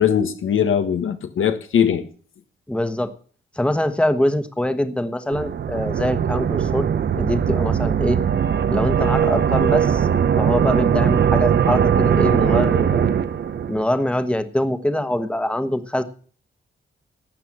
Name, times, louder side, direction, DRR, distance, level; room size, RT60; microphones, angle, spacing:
voice 1, 0.0-2.0, left 8 dB, 80° left, 1.5 m, -20 dB
voice 2, 2.7-3.1 3.5-6.9 7.1-8.2 8.7-10.1 10.4-13.1 13.7-16.0, left 1 dB, 5° left, 1.2 m, -23 dB
sound 1, 5.3-13.8, right 8 dB, 55° right, 0.8 m, -20 dB
12.5 x 8.2 x 8.6 m
wide cardioid pair, 115°, 21 cm